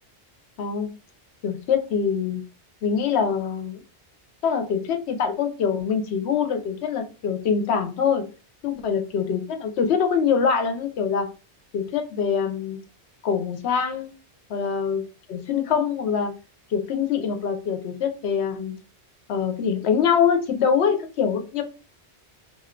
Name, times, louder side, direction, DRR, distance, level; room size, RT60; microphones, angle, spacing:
voice 1, 0.6-0.9 1.4-2.4 2.8-3.8 4.4-8.2 8.6-11.3 11.7-12.8 13.2-14.1 14.5-15.0 15.3-16.3 16.7-18.7 19.3-21.6, left 6 dB, 75° left, 7 dB, 0.9 m, -24 dB
2.6 x 2.2 x 3.6 m, 0.34 s
omnidirectional pair, 1.1 m